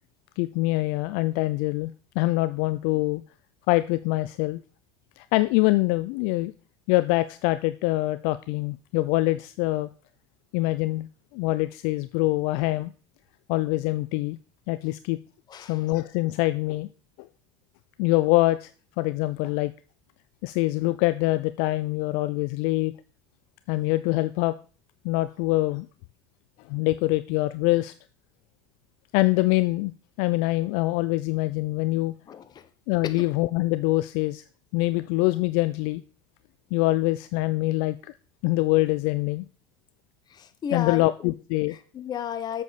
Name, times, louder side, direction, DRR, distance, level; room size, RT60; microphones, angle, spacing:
voice 1, 0.4-3.2 3.7-4.6 5.2-6.5 6.9-9.9 10.5-11.1 11.3-12.9 13.5-14.4 14.7-15.2 15.7-16.9 17.2-17.3 18.0-18.7 19.0-19.7 20.4-22.9 23.7-24.6 25.0-25.9 26.7-27.9 29.1-29.9 30.2-32.1 32.9-34.4 34.7-36.0 36.7-38.1 38.4-39.5 40.7-41.7, left 19 dB, 70° left, 14 dB, 0.4 m, -24 dB
voice 2, 15.5-15.8 32.3-32.7 33.0-33.3 40.3-41.3 41.7-42.6, left 9 dB, 40° left, 12 dB, 1.1 m, -33 dB
8.2 x 7.1 x 4.1 m, 0.37 s
hypercardioid pair, 85°, 11 cm